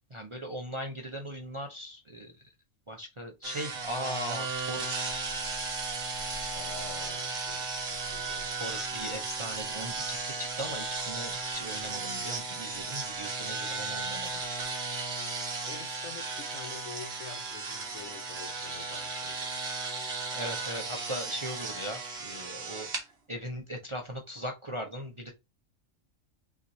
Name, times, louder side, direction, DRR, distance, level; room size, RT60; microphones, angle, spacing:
voice 1, 0.1-2.3 2.9-5.1 8.3-14.4 20.3-22.9 23.3-25.3, equal, 30° right, 0.6 m, -39 dB
sound 1, 3.4-23.0, right 4 dB, 50° right, 1.4 m, -35 dB
voice 2, 6.5-8.5 14.2-14.4 15.3-19.5, left 6 dB, 75° left, 1.3 m, -47 dB
5.8 x 2.9 x 2.6 m
omnidirectional pair, 1.4 m